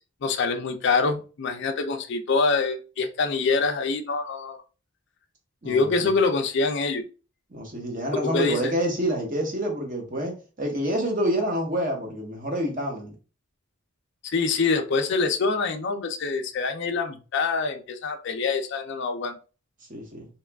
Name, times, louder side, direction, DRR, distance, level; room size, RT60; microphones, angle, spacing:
voice 1, 0.2-4.6 5.6-7.0 8.1-8.7 14.2-19.4, left 4 dB, 55° left, 5 dB, 0.4 m, -25 dB
voice 2, 5.6-6.1 7.5-13.1 19.9-20.3, equal, 40° right, 2 dB, 1.0 m, -27 dB
3.0 x 2.3 x 3.3 m, 0.35 s
head